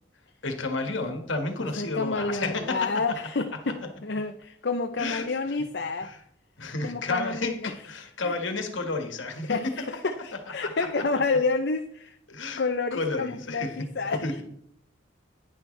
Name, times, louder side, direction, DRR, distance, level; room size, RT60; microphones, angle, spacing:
voice 1, 0.4-2.9 5.0-5.2 6.0-6.2 6.6-9.7 10.6-10.7 12.3-12.6 12.9-13.7 14.2-14.4, left 3 dB, 80° left, 5 dB, 1.6 m, -31 dB
voice 2, 1.6-6.1 6.8-8.4 9.4-12.2 12.6-14.4, left 3 dB, 55° left, 6 dB, 0.6 m, -29 dB
10.5 x 10.0 x 3.3 m, 0.69 s
head